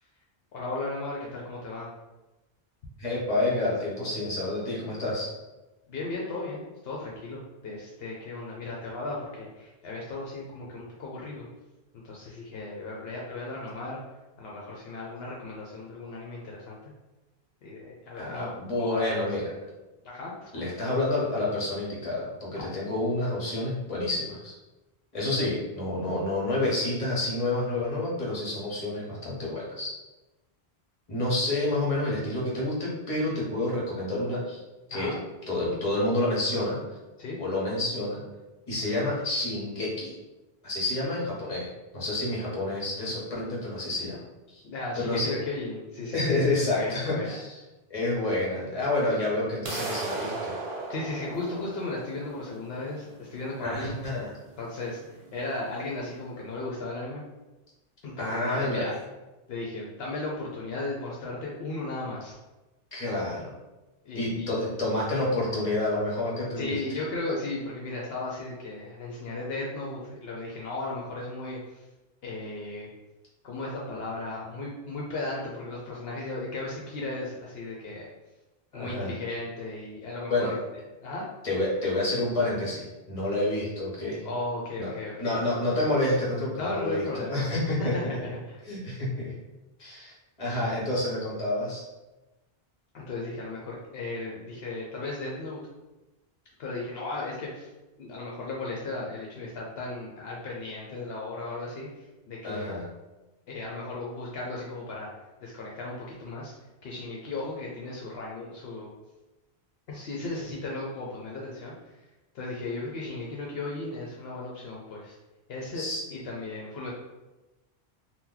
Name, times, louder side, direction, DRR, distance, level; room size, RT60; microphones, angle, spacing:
voice 1, 0.5-1.9 5.9-11.5 11.9-14.0 14.4-16.8 17.6-18.5 18.8-19.3 20.0-20.6 34.9-35.2 37.2-37.4 44.6-47.4 48.2-48.3 50.9-54.0 54.6-55.0 55.3-57.2 58.0-58.9 59.5-62.3 64.0-64.5 66.6-71.9 72.2-72.9 73.4-78.1 78.7-80.6 81.0-81.2 84.2-85.4 86.6-87.5 87.9-88.6 92.9-95.6 96.6-97.7 98.0-102.8 103.5-105.1 105.4-106.5 106.8-108.9 109.9-111.9 112.3-115.2 115.5-115.8 116.1-116.9, left 2 dB, 70° left, -3 dB, 0.8 m, -36 dB
voice 2, 3.0-5.3 18.2-19.5 20.5-24.5 25.1-29.9 31.1-34.6 34.9-35.1 35.5-36.8 37.4-38.2 38.7-40.2 40.6-44.6 45.0-45.4 46.1-47.6 47.9-50.5 53.6-54.3 58.2-58.9 62.9-63.6 64.1-66.8 78.7-79.1 80.3-80.5 81.4-84.3 84.8-88.2 88.6-89.3 89.8-91.8 102.4-102.9 115.7-116.0, left 2 dB, 35° left, -5 dB, 1.0 m, -29 dB
sound 1, 49.7-55.6, right 3 dB, 60° right, 0.8 m, -37 dB
2.9 x 2.2 x 3.7 m, 1.1 s
omnidirectional pair, 1.1 m